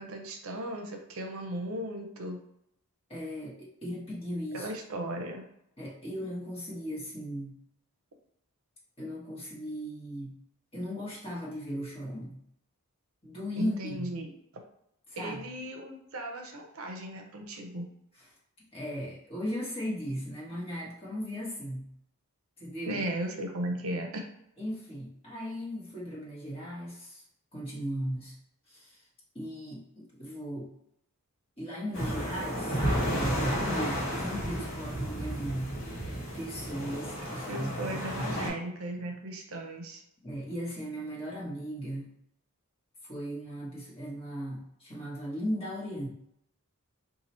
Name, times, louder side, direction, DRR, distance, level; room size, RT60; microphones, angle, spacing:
voice 1, 0.0-2.4 4.5-5.4 13.6-14.3 15.2-17.9 22.9-24.3 37.5-40.0, right 1 dB, 70° right, 3 dB, 0.6 m, -36 dB
voice 2, 3.1-4.7 5.8-7.5 9.0-10.3 10.7-12.4 13.2-14.1 15.1-15.4 18.7-21.9 22.6-23.0 24.6-27.2 27.5-28.4 28.7-29.0 29.3-30.7 31.6-35.8 36.3-38.4 40.2-42.1 43.0-46.1, equal, 25° left, -6 dB, 1.1 m, -37 dB
sound 1, 31.9-38.5, equal, 65° left, 1.2 m, -32 dB
2.8 x 2.4 x 4.1 m, 0.76 s
head